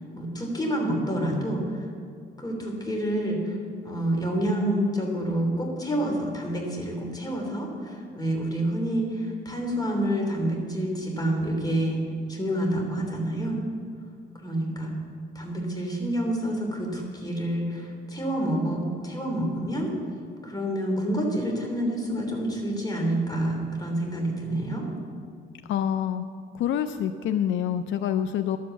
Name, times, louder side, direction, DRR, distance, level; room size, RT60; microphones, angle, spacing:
voice 1, 0.1-1.9 2.4-3.6 3.8-12.0 12.3-13.6 14.4-14.9 15.3-19.9 20.4-24.9, right 1 dB, 20° left, 1 dB, 3.3 m, -28 dB
voice 2, 25.7-26.2 26.5-28.6, left 9 dB, 75° left, 9 dB, 0.5 m, -26 dB
12.0 x 8.5 x 7.1 m, 2.3 s
cardioid pair, 90°, 20 cm